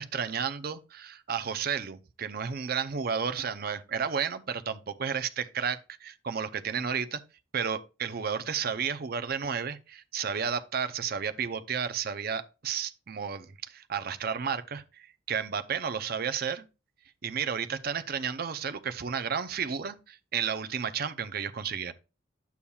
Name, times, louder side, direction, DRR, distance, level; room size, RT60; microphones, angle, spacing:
voice 1, 0.0-7.2 7.5-16.7 17.2-21.9, right 6 dB, 45° right, 0.5 m, -32 dB
9.8 x 7.0 x 2.3 m
head